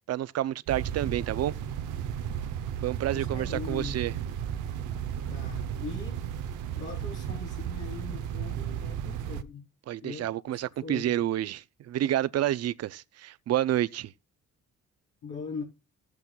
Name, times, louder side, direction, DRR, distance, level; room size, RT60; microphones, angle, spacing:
voice 1, 0.1-1.6 2.8-4.2 9.9-14.1, right 12 dB, 55° right, 0.5 m, -29 dB
sound 1, 0.7-9.4, right 9 dB, 85° right, 0.7 m, -34 dB
voice 2, 3.1-4.1 5.3-9.6 10.0-10.3 10.8-11.2 15.2-15.6, left 4 dB, 90° left, 3.7 m, -41 dB
14.5 x 8.3 x 2.3 m
cardioid pair, 90°, 30 cm